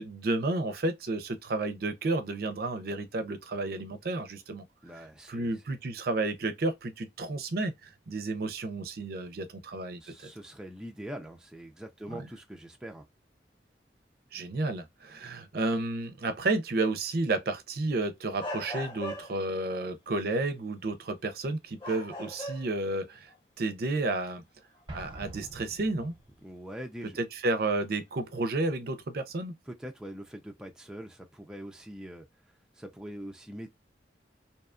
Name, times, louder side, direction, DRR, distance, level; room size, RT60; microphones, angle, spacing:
voice 1, 0.0-4.6 5.0-10.3 12.1-12.3 14.3-23.3 23.6-24.4 24.9-26.1 27.2-29.5, right 2 dB, 55° right, 0.5 m, -31 dB
voice 2, 4.8-5.6 10.0-13.0 26.4-27.2 29.7-32.3 32.8-33.7, equal, 5° right, 0.4 m, -43 dB
sound 1, 18.4-19.6 21.1-21.3 21.8-22.9 23.3-23.4 25.8-25.9 27.5-27.8, left 1 dB, 30° left, 1.1 m, -39 dB
Explosion, 24.9-26.5, right 1 dB, 30° right, 0.8 m, -45 dB
2.7 x 2.3 x 2.4 m
head